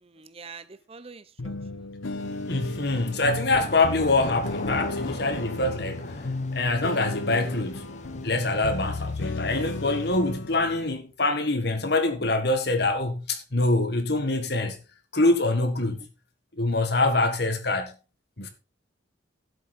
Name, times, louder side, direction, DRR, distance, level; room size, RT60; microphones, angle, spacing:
voice 1, 0.0-1.5 1.8-1.9 2.5-2.6 16.0-16.1, right 4 dB, 30° right, 0.7 m, -45 dB
sound 1, 1.4-10.9, left 2 dB, 90° left, 0.9 m, -34 dB
sound 2, 2.2-10.2, left 2 dB, 35° left, 1.2 m, -40 dB
voice 2, 2.5-6.0 6.5-14.8 15.1-16.0 16.6-17.9 18.4-18.5, left 2 dB, 55° left, 1.8 m, -25 dB
11.0 x 8.1 x 4.2 m
head